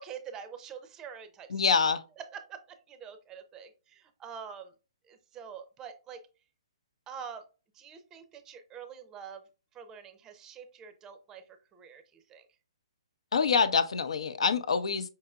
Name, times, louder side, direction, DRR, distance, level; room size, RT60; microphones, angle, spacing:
voice 1, 0.0-1.8 2.3-4.7 5.0-6.3 7.1-7.5 7.7-9.4 9.7-12.5, right 7 dB, 20° right, 0.5 m, -46 dB
voice 2, 1.5-2.0 13.3-15.1, left 5 dB, 80° left, 0.6 m, -26 dB
5.6 x 2.8 x 2.3 m
hypercardioid pair, 145°, 3 cm